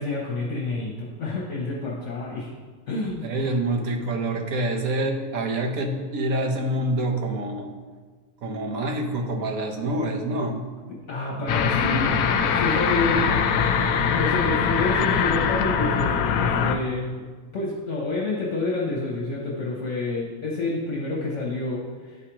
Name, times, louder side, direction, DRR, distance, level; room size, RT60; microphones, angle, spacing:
voice 1, 0.0-2.5 2.9-3.3 10.9-13.5 13.9-17.2 17.5-22.2, left 2 dB, 60° left, -3 dB, 1.2 m, -28 dB
voice 2, 3.2-7.7 8.4-10.6, right 1 dB, 80° right, 2 dB, 1.3 m, -26 dB
sound 1, 11.5-16.8, left 6 dB, 80° left, 1.0 m, -22 dB
11.0 x 4.9 x 2.9 m, 1.4 s
omnidirectional pair, 1.4 m